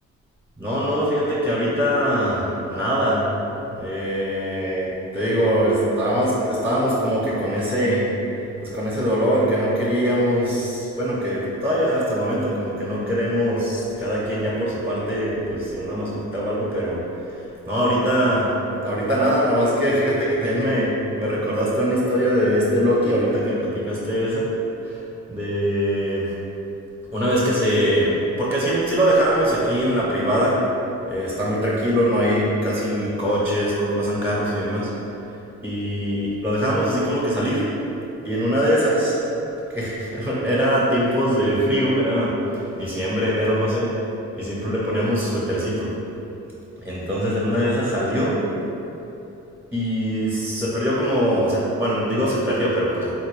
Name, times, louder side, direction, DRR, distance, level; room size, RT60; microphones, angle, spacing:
voice 1, 0.6-3.3 3.7-8.1 8.6-24.5 24.8-25.0 25.3-26.3 27.1-30.6 31.1-34.9 35.6-37.7 38.2-39.2 39.7-43.9 44.3-45.9 46.8-48.4 49.7-53.1, equal, 5° right, -7 dB, 0.7 m, -22 dB
3.8 x 2.2 x 3.1 m, 2.9 s
cardioid pair, 90°, 30 cm